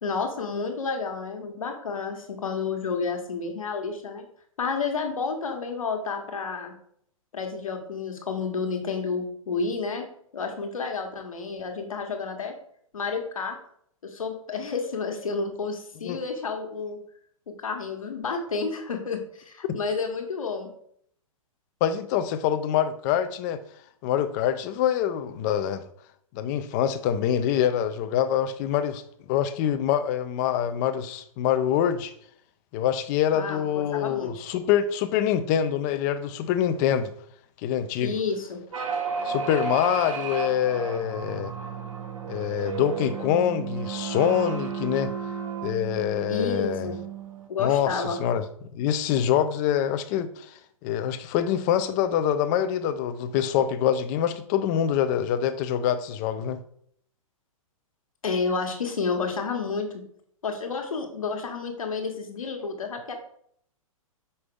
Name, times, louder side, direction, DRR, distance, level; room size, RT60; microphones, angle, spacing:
voice 1, 0.0-4.2 4.6-6.7 7.3-10.1 10.3-12.5 12.9-13.6 14.0-17.0 17.5-20.7 33.3-34.3 38.0-38.6 46.3-47.0 47.5-48.2 58.2-60.0 60.4-63.1, left 4 dB, 70° left, 1.4 m, -30 dB
voice 2, 21.8-23.6 24.0-25.8 26.3-29.0 29.3-32.1 32.7-37.1 37.6-38.1 39.2-41.5 42.3-45.1 45.6-46.9 47.6-48.4 48.7-56.6, left 9 dB, 30° left, 0.5 m, -25 dB
sound 1, 38.7-47.5, right 6 dB, 70° right, 1.3 m, -33 dB
5.6 x 5.3 x 3.7 m
figure-of-eight pair, 115°, 18 cm